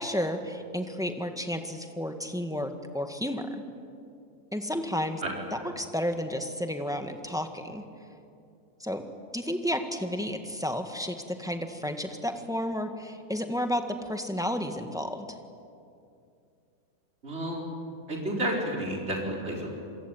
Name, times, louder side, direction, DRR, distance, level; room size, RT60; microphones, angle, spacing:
voice 1, 0.0-3.6 4.5-5.2 5.5-7.8 8.8-9.0 9.3-15.3, equal, ahead, 6 dB, 1.6 m, -32 dB
voice 2, 17.2-17.7 18.1-19.7, right 1 dB, 45° right, -1 dB, 4.7 m, -31 dB
27.5 x 22.5 x 9.2 m, 2.5 s
omnidirectional pair, 1.6 m